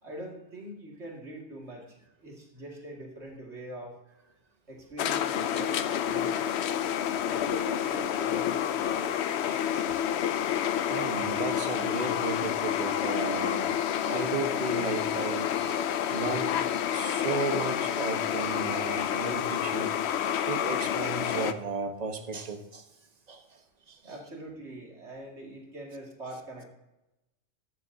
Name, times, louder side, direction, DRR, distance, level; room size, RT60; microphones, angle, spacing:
voice 1, 0.0-4.0 4.7-6.5 7.3-9.1 24.0-26.7, right 1 dB, 80° right, -1 dB, 2.6 m, -43 dB
sound 1, 5.0-21.5, left 9 dB, 75° left, 0.9 m, -29 dB
voice 2, 9.5-10.0 10.4-10.6 10.9-13.8 14.0-15.8 16.1-16.6 16.9-19.9 20.5-22.9 23.3-23.6 23.9-24.0, right 4 dB, 40° right, 6 dB, 1.2 m, -35 dB
14.5 x 11.5 x 2.8 m, 0.96 s
omnidirectional pair, 1.1 m